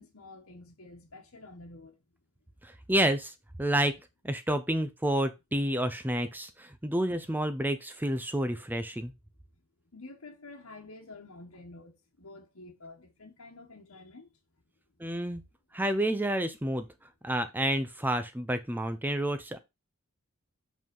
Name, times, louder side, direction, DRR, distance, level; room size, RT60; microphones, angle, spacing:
voice 1, 0.0-2.0 9.9-14.3, left 2 dB, 80° left, 1.4 m, -49 dB
voice 2, 2.6-3.3 3.6-3.9 4.2-9.1 15.0-15.4 15.7-16.9 17.2-19.6, right 1 dB, 10° right, 0.6 m, -29 dB
5.6 x 5.4 x 5.4 m
head